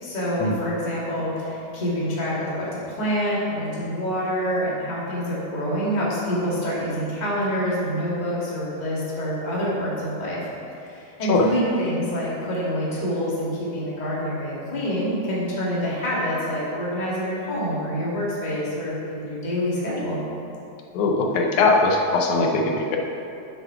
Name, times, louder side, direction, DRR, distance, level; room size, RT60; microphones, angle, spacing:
voice 1, 0.0-10.5 10.8-20.2, equal, 15° left, -7 dB, 1.5 m, -26 dB
voice 2, 20.9-23.0, left 3 dB, 75° left, 1 dB, 2.0 m, -20 dB
7.7 x 6.6 x 5.8 m, 2.8 s
omnidirectional pair, 3.7 m